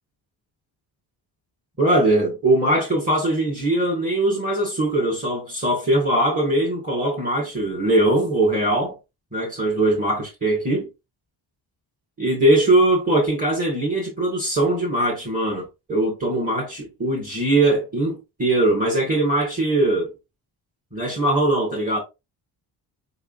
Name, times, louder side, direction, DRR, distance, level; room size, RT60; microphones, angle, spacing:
voice 1, 1.8-8.9 9.3-10.9 12.2-20.1 20.9-22.0, right 1 dB, 20° right, 1.7 m, -21 dB
4.0 x 3.7 x 2.4 m
cardioid pair, 90°, 44 cm